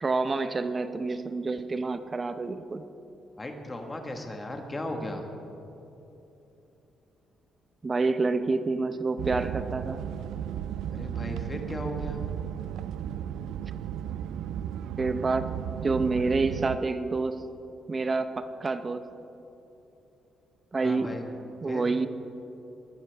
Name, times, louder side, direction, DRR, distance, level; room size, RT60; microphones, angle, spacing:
voice 1, 0.0-2.8 7.8-10.0 15.0-15.5 15.8-17.4 17.9-19.1 20.7-21.1 21.6-22.1, right 3 dB, 30° right, 11 dB, 0.7 m, -28 dB
voice 2, 3.4-5.2 10.9-12.2 20.8-21.3 21.7-21.9, left 1 dB, 25° left, 3 dB, 1.6 m, -36 dB
sound 1, 9.2-16.8, right 10 dB, 80° right, 0.4 m, -34 dB
20.0 x 11.5 x 3.5 m, 2.9 s
cardioid pair, 90°, 0 cm